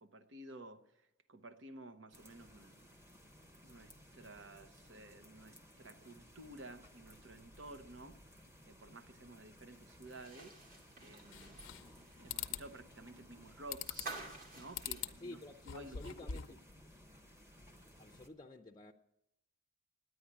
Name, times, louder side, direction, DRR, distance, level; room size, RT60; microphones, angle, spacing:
voice 1, 0.0-3.0 3.6-8.2 8.7-10.7 11.0-11.6 12.2-14.0 14.6-16.2, right 2 dB, 65° right, 0.9 m, -53 dB
sound 1, 2.1-18.3, equal, 15° right, 1.1 m, -60 dB
sound 2, 10.1-16.1 16.4-16.5 17.9-18.0, right 3 dB, 45° right, 2.5 m, -51 dB
sound 3, 11.3-12.0 12.3-12.7 13.7-14.2 14.7-15.2 15.6-16.6, left 9 dB, 75° left, 0.6 m, -42 dB
voice 2, 15.2-16.6 18.0-18.9, left 2 dB, 20° left, 0.5 m, -51 dB
9.9 x 9.4 x 10.0 m
head